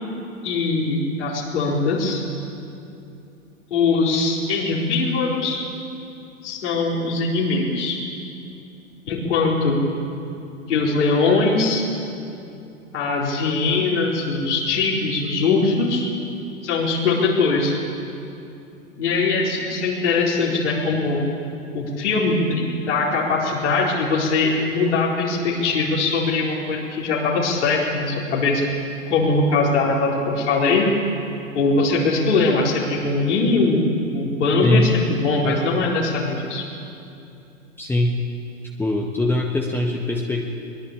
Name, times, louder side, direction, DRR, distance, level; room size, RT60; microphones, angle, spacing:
voice 1, 0.4-2.2 3.7-5.7 6.4-8.0 9.1-9.8 10.7-11.8 12.9-16.1 16.6-17.8 19.0-21.2 21.7-28.6 29.1-30.9 31.5-36.6, left 3 dB, 60° left, -5 dB, 4.6 m, -21 dB
voice 2, 37.8-38.2 38.8-40.4, left 1 dB, 5° left, 0 dB, 1.7 m, -21 dB
22.0 x 21.5 x 8.5 m, 2.7 s
figure-of-eight pair, 100°, 39 cm